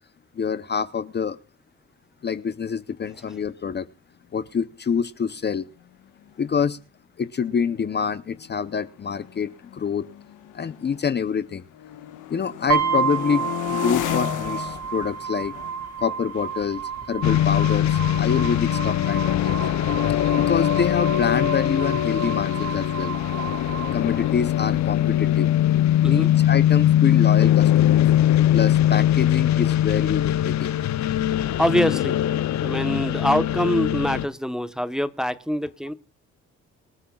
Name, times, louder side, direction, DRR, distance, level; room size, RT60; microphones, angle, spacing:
voice 1, 0.3-1.4 2.2-3.9 4.3-5.7 6.4-6.8 7.2-10.1 10.5-11.6 12.3-15.5 16.0-16.8 17.1-19.6 20.4-23.2 23.9-25.5 26.0-28.0 28.5-30.8, left 6 dB, 35° left, 0.7 m, -26 dB
sound 1, 5.9-6.0 6.3-6.6 7.4-11.3 11.7-18.3, left 12 dB, 85° left, 1.4 m, -35 dB
sound 2, 12.7-24.7, right 8 dB, 70° right, 3.3 m, -31 dB
sound 3, 17.2-34.3, left 12 dB, 65° left, 0.7 m, -21 dB
voice 2, 26.0-26.3 31.6-32.2 32.6-35.9, equal, ahead, 1.0 m, -24 dB
25.5 x 10.0 x 2.3 m
cardioid pair, 90°, 30 cm